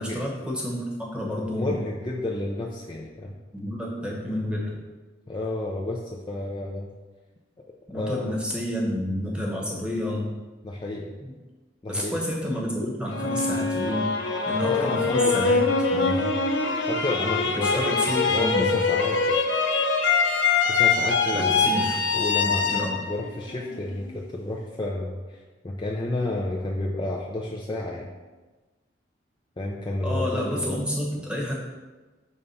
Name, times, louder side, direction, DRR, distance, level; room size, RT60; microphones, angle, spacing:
voice 1, 0.0-1.8 3.5-4.7 7.9-10.3 11.2-11.3 11.9-14.1 14.5-16.3 17.6-18.8 21.3-22.0 22.5-23.0 30.0-31.6, left 1 dB, 5° right, -3 dB, 1.0 m, -29 dB
voice 2, 1.6-3.3 5.3-6.9 7.9-8.3 10.6-11.1 11.8-12.2 14.6-15.5 16.9-19.4 20.6-21.8 22.1-28.1 29.6-30.7, left 1 dB, 25° left, -2 dB, 0.4 m, -31 dB
sound 1, 13.1-24.1, left 4 dB, 80° left, 0.6 m, -24 dB
5.3 x 3.4 x 5.4 m, 1.2 s
head